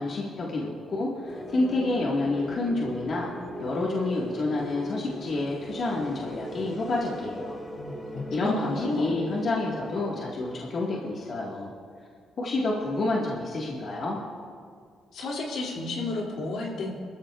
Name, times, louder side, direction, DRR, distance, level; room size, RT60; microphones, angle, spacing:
voice 1, 0.0-3.3 3.6-7.6 8.3-11.7 12.4-14.2, left 2 dB, 50° left, -4 dB, 1.9 m, -29 dB
sound 1, 1.2-11.4, equal, 20° left, 2.5 m, -39 dB
voice 2, 7.7-9.2 15.1-16.9, left 2 dB, 75° left, -2 dB, 2.8 m, -32 dB
23.0 x 14.0 x 2.5 m, 2.1 s
cardioid pair, 90°, 0 cm